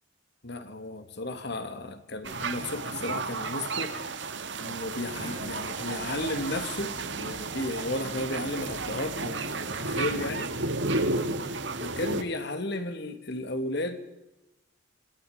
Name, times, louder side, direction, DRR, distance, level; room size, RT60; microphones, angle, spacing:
voice 1, 0.4-3.9 4.6-10.5 11.8-14.0, left 2 dB, 60° left, 9 dB, 2.7 m, -34 dB
sound 1, 2.2-12.2, right 3 dB, 65° right, 2.0 m, -32 dB
Singing, 5.1-9.9, equal, 20° left, 6.0 m, -51 dB
27.5 x 25.5 x 5.3 m, 0.96 s
head